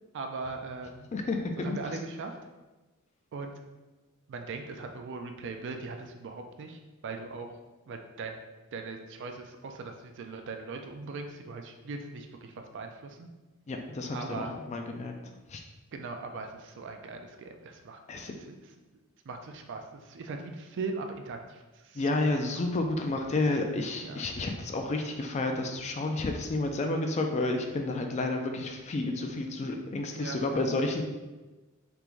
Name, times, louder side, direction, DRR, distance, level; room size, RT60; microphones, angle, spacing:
voice 1, 0.1-1.1 1.6-2.3 3.3-3.5 4.3-7.5 7.9-8.4 8.7-13.3 14.1-14.5 15.9-18.0 18.5-18.6 19.3-22.0 23.4-23.6 24.0-24.2 30.1-30.4, right 4 dB, 55° right, 5 dB, 0.4 m, -39 dB
voice 2, 1.1-1.8 13.7-15.1 15.5-15.6 18.1-18.3 21.9-31.0, left 2 dB, 30° left, 4 dB, 0.3 m, -30 dB
3.5 x 2.5 x 3.0 m, 1.2 s
head